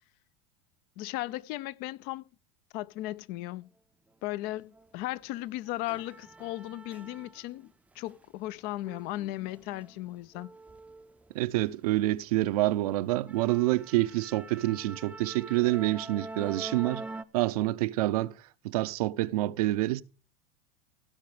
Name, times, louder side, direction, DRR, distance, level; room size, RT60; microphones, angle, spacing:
voice 1, 1.0-2.2 2.7-3.7 4.2-10.5, left 16 dB, 55° left, 0.6 m, -36 dB
sound 1, 4.7-4.9 5.3-7.6 8.0-11.8 12.1-12.4 12.8-12.9 13.3-17.2, right 3 dB, 5° right, 0.5 m, -45 dB
voice 2, 11.3-17.0 17.3-18.4 18.6-20.0, right 17 dB, 80° right, 0.7 m, -27 dB
16.0 x 5.7 x 4.9 m
supercardioid pair, 120°, 19 cm